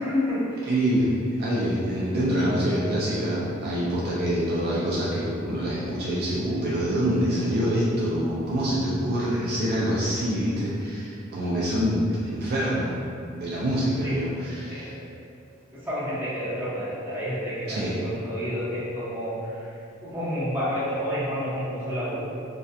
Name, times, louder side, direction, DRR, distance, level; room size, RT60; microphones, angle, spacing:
voice 1, 0.0-0.7 6.2-6.3 14.0-14.1 14.7-14.9 15.8-19.7 20.0-22.2, equal, 10° right, -13 dB, 0.8 m, -29 dB
voice 2, 0.7-12.9 13.3-14.9 17.7-17.9, equal, 50° right, -7 dB, 0.3 m, -25 dB
2.6 x 2.2 x 2.2 m, 2.5 s
head